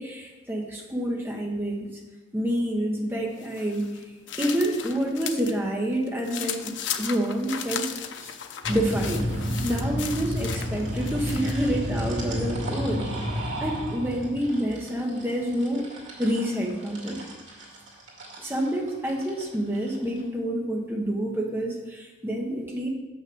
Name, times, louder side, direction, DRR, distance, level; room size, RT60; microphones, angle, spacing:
voice 1, 0.0-1.9 2.3-3.9 4.4-8.3 8.7-9.3 9.6-13.1 13.6-15.8 16.2-17.2 18.4-22.9, right 1 dB, 10° right, -1 dB, 1.2 m, -28 dB
sound 1, 3.4-5.6 5.9-11.7, left 8 dB, 85° left, 0.7 m, -36 dB
sound 2, 8.6-20.2, equal, 85° right, 2.3 m, -32 dB
6.8 x 5.9 x 6.2 m, 1.2 s
head